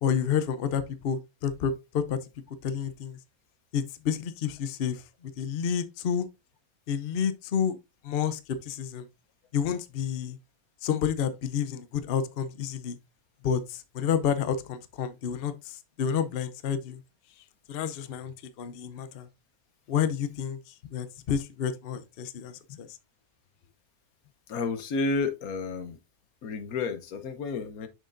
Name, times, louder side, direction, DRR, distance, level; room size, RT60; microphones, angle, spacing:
voice 1, 0.0-2.2 2.6-3.2 3.7-6.3 6.9-7.8 8.0-9.1 9.5-10.4 10.8-13.0 13.4-17.0 17.7-19.3 19.9-22.9, left 8 dB, 55° left, 0.7 m, -30 dB
voice 2, 24.5-26.0 26.4-27.9, left 3 dB, 85° left, 1.3 m, -31 dB
6.5 x 6.3 x 2.5 m
omnidirectional pair, 1.5 m